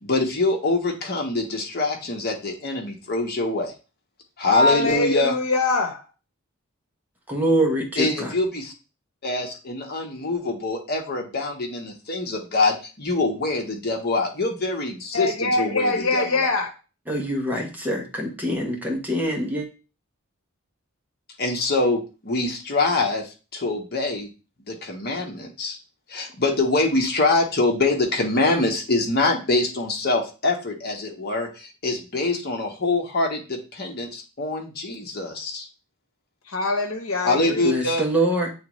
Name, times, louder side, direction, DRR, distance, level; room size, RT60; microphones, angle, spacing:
voice 1, 0.0-3.7 4.4-5.3 8.0-8.7 9.2-16.5 21.4-24.3 24.7-25.8 26.1-35.7 37.2-38.1, left 2 dB, 50° left, 1.2 m, -24 dB
voice 2, 4.5-6.1 15.1-16.7 36.5-37.6, left 2 dB, 80° left, 1.0 m, -23 dB
voice 3, 7.3-8.3 17.1-19.7 37.6-38.5, right 1 dB, 10° right, 1.0 m, -24 dB
8.4 x 3.6 x 3.1 m
head